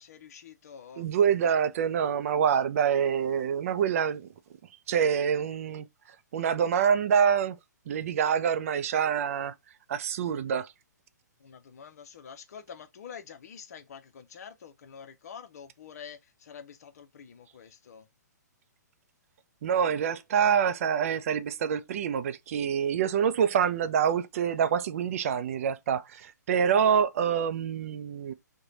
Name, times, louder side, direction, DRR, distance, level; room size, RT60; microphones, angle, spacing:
voice 1, 0.0-1.1 11.4-18.1, left 7 dB, 55° left, 0.6 m, -47 dB
voice 2, 1.0-4.3 4.9-5.9 6.3-7.6 7.9-9.5 9.9-10.7 19.6-28.3, right 7 dB, 50° right, 0.4 m, -26 dB
3.1 x 2.2 x 3.8 m
figure-of-eight pair, 125°, 10 cm